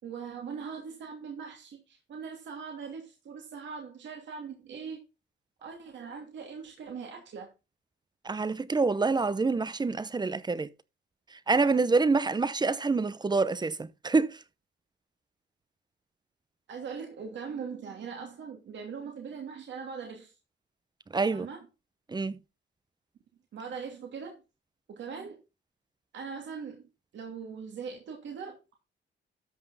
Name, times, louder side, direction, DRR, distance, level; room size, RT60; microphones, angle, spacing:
voice 1, 0.0-5.0 5.6-7.5 16.7-20.3 21.3-21.6 23.5-24.4 24.9-25.4 26.1-28.7, right 6 dB, 65° right, 2.9 m, -41 dB
voice 2, 8.2-10.7 11.5-14.4 21.1-21.5 22.1-22.4, right 4 dB, 20° right, 0.8 m, -26 dB
13.0 x 6.0 x 4.1 m
cardioid pair, 90°, 20 cm